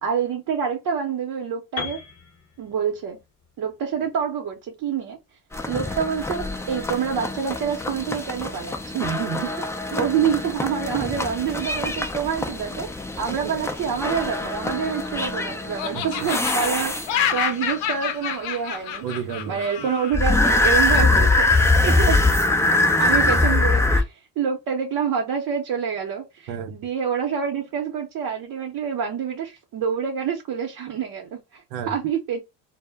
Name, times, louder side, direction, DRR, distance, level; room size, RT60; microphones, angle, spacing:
voice 1, 0.0-2.0 2.6-3.2 3.6-5.2 5.7-8.8 10.0-12.9 13.2-19.0 19.5-22.2 23.0-32.4, right 7 dB, 50° right, 0.7 m, -27 dB
Piano, 1.8-5.7, left 5 dB, 35° left, 0.9 m, -38 dB
sound 1, 5.5-17.4 20.1-24.0, left 2 dB, 5° left, 0.4 m, -23 dB
voice 2, 8.9-10.1 13.4-13.6 15.9-16.0 19.0-19.9 26.5-26.8 31.7-31.9, right 8 dB, 80° right, 0.7 m, -31 dB
Laughter, 14.6-15.4 15.8-20.2, left 9 dB, 80° left, 0.6 m, -28 dB
2.1 x 2.0 x 3.3 m
supercardioid pair, 90°, 42 cm